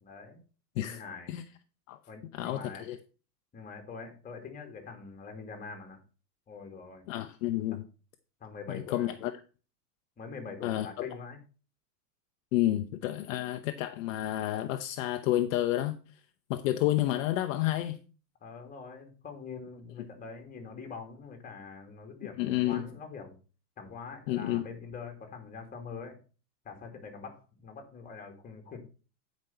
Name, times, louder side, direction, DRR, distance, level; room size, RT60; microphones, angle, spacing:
voice 1, 0.0-0.4 0.8-1.3 2.1-2.9 3.5-6.0 6.5-7.0 8.4-9.1 10.2-11.4 18.4-23.4 23.8-26.2 26.6-28.8, left 5 dB, 15° left, 2.2 m, -44 dB
voice 2, 2.3-3.0 7.1-7.8 8.7-9.3 10.6-11.1 12.5-16.0 16.5-18.0 22.4-22.8 24.3-24.7, left 14 dB, 55° left, 0.8 m, -30 dB
9.3 x 5.2 x 5.5 m
supercardioid pair, 135°, 49 cm